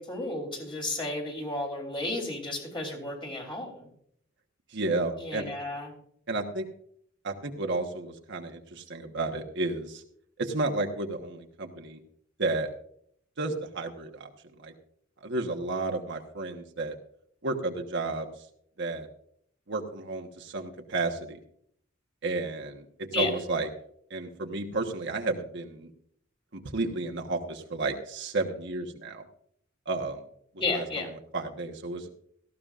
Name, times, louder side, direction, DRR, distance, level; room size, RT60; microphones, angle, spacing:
voice 1, 0.0-3.9 5.2-5.9 23.1-23.3 30.6-31.1, left 2 dB, 25° left, 1 dB, 3.3 m, -32 dB
voice 2, 4.7-5.5 6.3-6.7 7.2-10.0 10.4-12.0 12.4-12.7 13.4-14.3 14.6-14.7 15.2-16.9 17.4-18.3 18.8-19.1 19.7-21.4 22.2-22.8 23.2-23.7 24.1-25.9 26.5-29.2 29.9-30.2 30.7-32.1, right 2 dB, 60° right, 3 dB, 1.3 m, -32 dB
18.0 x 14.0 x 2.5 m, 0.67 s
head